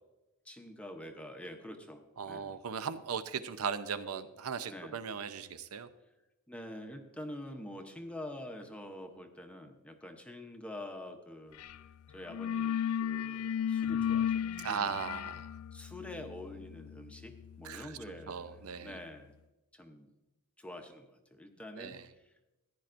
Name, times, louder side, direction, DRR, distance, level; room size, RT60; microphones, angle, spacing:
voice 1, 0.4-2.5 4.7-5.0 6.5-11.6 12.1-14.8 15.7-18.5 18.8-19.3 19.7-20.1 20.6-22.6, left 1 dB, 5° left, 4 dB, 0.7 m, -46 dB
voice 2, 2.2-5.9 14.6-15.5 17.6-18.0 18.3-19.0 21.8-22.1, right 6 dB, 75° right, 12 dB, 0.6 m, -38 dB
sound 1, 11.6-11.8 12.1-18.7, left 8 dB, 70° left, 0.3 m, -35 dB
15.0 x 10.5 x 2.5 m, 1.0 s
head